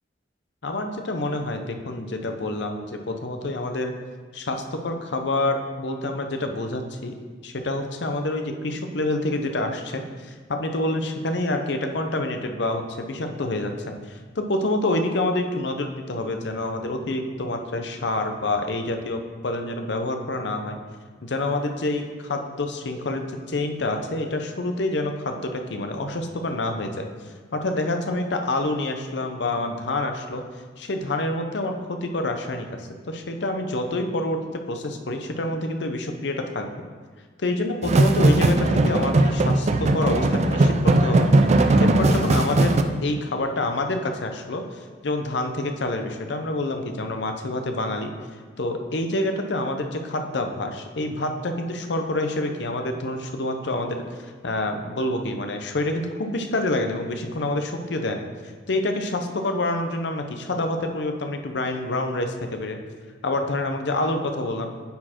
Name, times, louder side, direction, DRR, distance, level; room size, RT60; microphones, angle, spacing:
voice 1, 0.6-3.9 4.3-7.2 7.4-20.8 21.2-27.1 27.5-30.4 30.8-36.7 37.4-41.3 41.8-42.8 43.0-44.6 45.0-48.1 48.6-54.0 54.4-58.3 58.7-62.8 63.2-64.7, left 2 dB, 65° left, 5 dB, 0.7 m, -27 dB
sound 1, 37.8-42.8, right 2 dB, 35° right, 0.4 m, -19 dB
9.3 x 4.4 x 4.3 m, 1.5 s
head